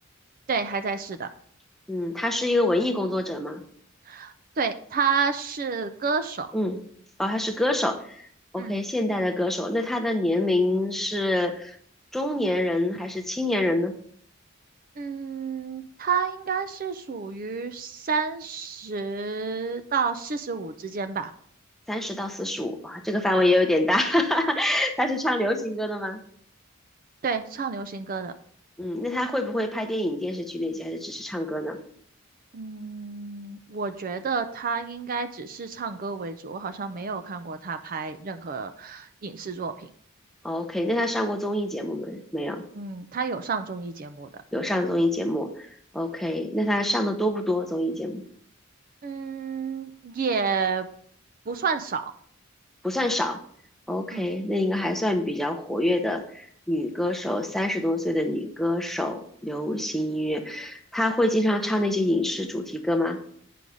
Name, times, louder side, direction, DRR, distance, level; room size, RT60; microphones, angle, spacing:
voice 1, 0.5-1.3 4.1-6.5 8.6-8.8 15.0-21.3 27.2-28.3 32.5-39.9 42.7-44.3 49.0-50.9 51.5-52.0 54.1-54.3, right 5 dB, 40° right, 9 dB, 0.4 m, -30 dB
voice 2, 1.9-3.6 6.5-6.8 7.2-8.3 8.5-11.8 12.1-13.9 21.9-26.2 28.8-31.8 40.4-42.6 44.5-45.7 45.9-48.2 52.8-53.4 53.9-63.2, left 1 dB, ahead, 3 dB, 0.7 m, -26 dB
9.3 x 5.4 x 4.8 m, 0.62 s
head